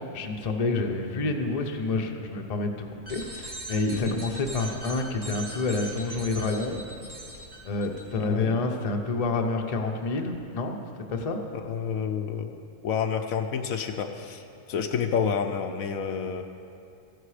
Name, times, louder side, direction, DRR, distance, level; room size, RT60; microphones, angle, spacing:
voice 1, 0.0-6.8 7.6-10.8 11.1-11.4, left 3 dB, 35° left, 3 dB, 0.7 m, -28 dB
sound 1, 2.9-8.0, right 1 dB, 45° right, 2.9 m, -40 dB
voice 2, 8.2-8.6 11.7-12.5 12.8-14.4 14.7-16.4, left 7 dB, 70° left, 6 dB, 1.0 m, -29 dB
14.5 x 11.0 x 4.9 m, 2.5 s
omnidirectional pair, 1.6 m